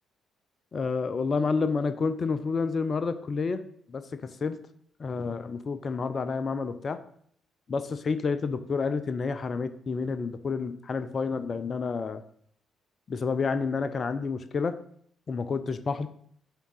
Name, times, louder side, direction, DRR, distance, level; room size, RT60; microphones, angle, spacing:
voice 1, 0.7-3.6 3.9-4.0 4.4-4.6 5.0-7.0 7.7-12.2 13.1-14.7 15.3-16.1, left 4 dB, 40° left, 12 dB, 0.5 m, -29 dB
8.9 x 3.7 x 6.3 m, 0.64 s
figure-of-eight pair, 40°, 0 cm